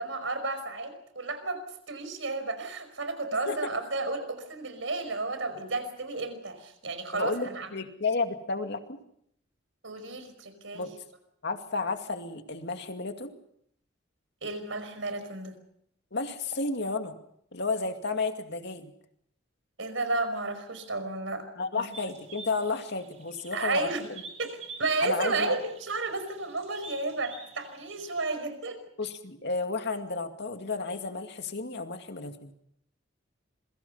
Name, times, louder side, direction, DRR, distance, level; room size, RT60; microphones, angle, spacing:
voice 1, 0.0-1.6 1.9-7.7 9.8-10.9 14.4-15.5 19.8-21.4 21.8-21.9 23.5-24.0 24.4-24.5 24.8-28.8, right 3 dB, 75° right, 9 dB, 5.3 m, -32 dB
voice 2, 7.1-9.0 10.7-10.9 11.4-13.3 16.1-17.2 17.5-18.9 21.6-24.2 25.0-25.6 29.0-32.5, left 3 dB, 60° left, 6 dB, 2.3 m, -32 dB
sound 1, 21.9-28.3, right 4 dB, 35° right, 3.1 m, -48 dB
27.5 x 23.0 x 5.7 m, 0.71 s
head